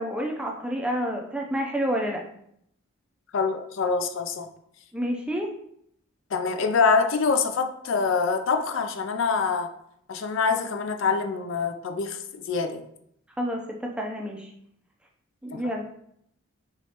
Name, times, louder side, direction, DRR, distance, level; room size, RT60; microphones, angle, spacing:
voice 1, 0.0-2.2 4.9-5.5 13.4-14.5 15.4-16.0, equal, 5° right, 0 dB, 0.4 m, -29 dB
voice 2, 3.3-4.5 6.3-9.7 10.1-12.2 12.5-12.9 15.5-15.6, left 5 dB, 65° left, 8 dB, 0.4 m, -25 dB
4.8 x 3.1 x 2.8 m, 0.72 s
head